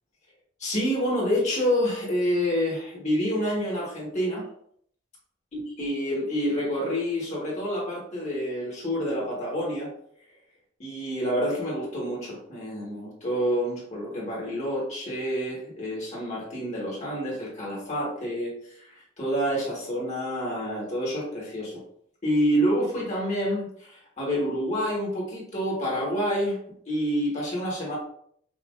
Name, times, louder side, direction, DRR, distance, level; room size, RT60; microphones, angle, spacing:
voice 1, 0.6-4.4 5.8-9.9 10.8-18.5 18.8-21.8 22.2-26.6 26.9-28.0, equal, 40° left, -4 dB, 1.6 m, -28 dB
5.8 x 2.8 x 2.5 m, 0.64 s
head